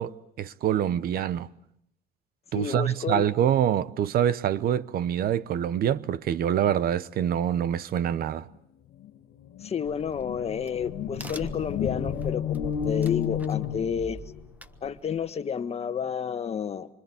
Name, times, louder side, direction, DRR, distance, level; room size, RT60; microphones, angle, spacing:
voice 1, 0.0-1.5 2.5-8.5, right 10 dB, 65° right, 0.9 m, -25 dB
voice 2, 2.5-3.3 9.6-14.2 14.8-16.9, left 7 dB, 40° left, 1.4 m, -30 dB
sound 1, 9.0-9.1 9.4-14.5, left 10 dB, 80° left, 1.4 m, -32 dB
Crack, 9.9-15.3, right 2 dB, 10° right, 1.3 m, -42 dB
27.0 x 25.5 x 7.2 m
cardioid pair, 110°, 17 cm